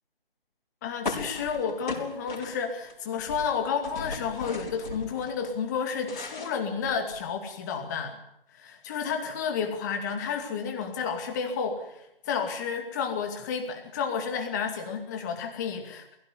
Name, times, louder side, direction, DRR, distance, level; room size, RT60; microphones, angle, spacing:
voice 1, 0.8-8.1 8.6-16.2, left 6 dB, 20° left, 4 dB, 2.4 m, -31 dB
sound 1, 1.0-2.9 3.2-5.3 5.7-7.3, left 3 dB, 50° left, 6.1 m, -37 dB
23.0 x 16.5 x 9.7 m, 0.80 s
figure-of-eight pair, 155°, 30 cm